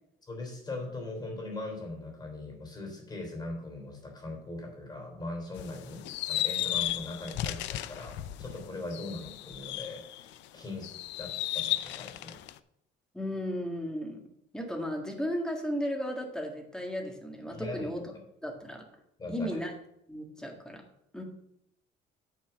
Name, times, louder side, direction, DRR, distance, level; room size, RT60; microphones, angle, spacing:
voice 1, 0.3-12.4 17.5-17.9 19.2-19.6, left 2 dB, 20° left, 1 dB, 3.3 m, -40 dB
sound 1, 5.6-10.4 10.8-12.6, left 14 dB, 75° left, 0.5 m, -34 dB
voice 2, 13.1-14.2 14.5-18.1 18.4-18.9 19.3-19.7 20.1-20.8 21.1-21.2, equal, 5° left, 1 dB, 1.7 m, -35 dB
9.3 x 4.5 x 6.9 m, 0.76 s
cardioid pair, 145°, 19 cm